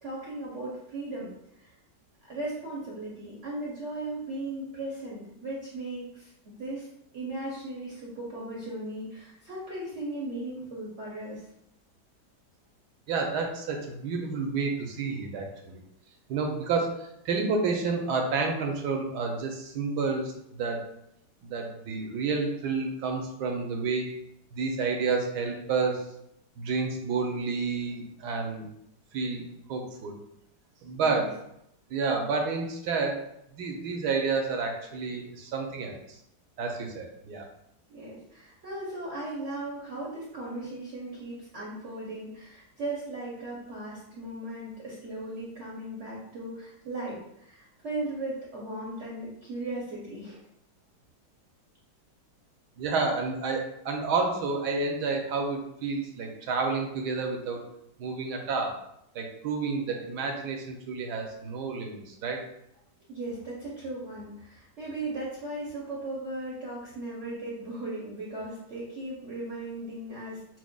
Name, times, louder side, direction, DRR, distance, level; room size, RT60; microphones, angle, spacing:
voice 1, 0.0-1.7 2.3-6.9 7.1-11.5 31.0-31.3 37.9-50.4 63.1-70.6, right 2 dB, 55° right, -5 dB, 0.8 m, -37 dB
voice 2, 13.1-15.8 16.3-20.3 20.6-20.8 21.4-24.1 24.5-26.1 26.6-28.7 29.1-29.4 29.7-30.1 30.8-31.3 31.9-33.2 33.6-36.0 36.6-37.4 52.8-57.6 58.0-58.8 59.1-62.4, right 4 dB, 80° right, 2 dB, 1.2 m, -30 dB
6.0 x 2.1 x 2.2 m, 0.78 s
omnidirectional pair, 1.8 m